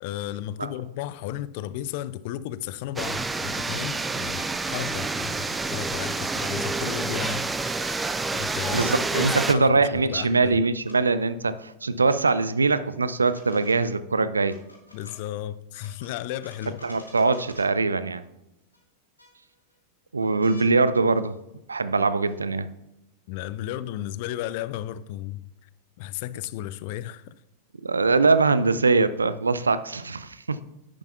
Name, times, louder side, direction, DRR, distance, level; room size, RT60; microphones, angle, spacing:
voice 1, 0.0-7.4 8.3-10.6 14.9-16.8 23.3-25.7 26.0-27.3, left 13 dB, 50° left, 0.4 m, -34 dB
sound 1, 3.0-9.5, right 3 dB, 10° right, 0.5 m, -28 dB
sound 2, 3.5-3.6 4.0-5.6 6.2-6.8 7.6-8.5 9.1-9.6 10.1-10.3 10.8-11.0 12.0-12.2 13.1-14.0 14.4-15.2 15.7-17.7 18.7-18.8 19.2-19.7 20.4-20.7 22.3-22.4, left 1 dB, 85° left, 2.3 m, -49 dB
voice 2, 8.7-14.6 16.8-18.2 20.1-21.3 21.7-22.7 27.8-30.6, right 3 dB, 75° right, 0.5 m, -22 dB
10.5 x 10.0 x 2.3 m
figure-of-eight pair, 90°, 0 cm